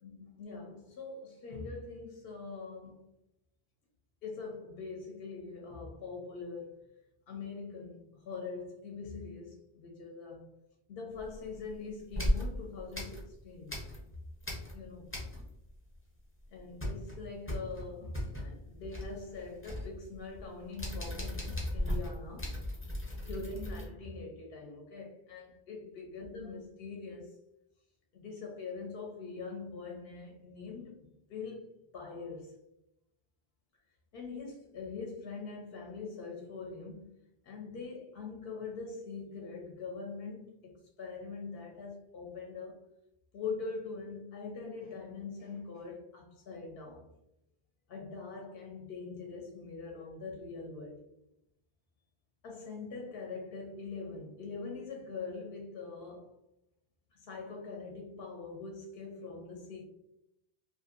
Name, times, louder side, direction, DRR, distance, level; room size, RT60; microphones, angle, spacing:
voice 1, 0.0-3.1 4.2-6.8 7.3-10.5 10.9-13.9 14.7-15.4 16.5-22.6 23.2-27.4 28.1-32.6 34.1-37.1 37.4-42.8 43.3-47.1 47.9-51.0 52.4-56.3 57.1-59.8, left 4 dB, 70° left, 0.7 m, -43 dB
sound 1, 11.2-11.7 12.1-14.1 14.4-15.7 16.0-16.1 16.4-23.9, left 1 dB, 15° left, 0.5 m, -37 dB
2.6 x 2.5 x 2.4 m
omnidirectional pair, 1.1 m